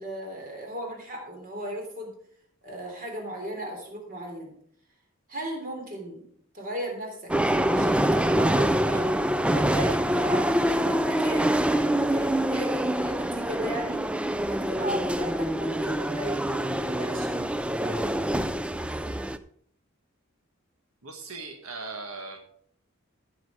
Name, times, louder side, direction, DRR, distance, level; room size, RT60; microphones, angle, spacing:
voice 1, 0.0-2.1 2.6-4.5 5.3-6.2 6.5-7.3 7.7-9.1 9.5-14.0 14.5-17.4 17.8-18.2, right 1 dB, 40° right, 1 dB, 3.4 m, -36 dB
sound 1, 7.3-19.4, right 1 dB, 5° right, 0.4 m, -25 dB
voice 2, 21.0-22.4, right 3 dB, 85° right, 3 dB, 1.4 m, -38 dB
15.0 x 6.5 x 4.7 m, 0.63 s
head